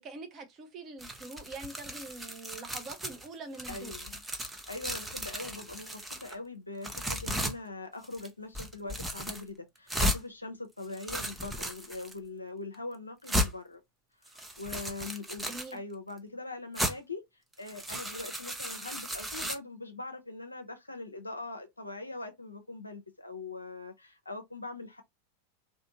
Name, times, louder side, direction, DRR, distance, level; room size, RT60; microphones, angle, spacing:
voice 1, 0.0-3.9 15.4-15.8, right 3 dB, 30° right, 0.8 m, -44 dB
sound 1, 1.0-3.3 3.5-6.4 6.8-7.5 8.0-8.3 8.5-9.4 9.9-10.2 10.8-12.1 12.7-12.8 13.3-13.5 14.3-15.7 16.8-16.9 17.5-19.6, equal, 5° right, 0.5 m, -35 dB
voice 2, 3.7-4.2 4.7-13.8 14.2-17.2 17.6-25.0, left 3 dB, 80° left, 0.4 m, -42 dB
2.5 x 2.4 x 2.8 m
figure-of-eight pair, 90°, 0 cm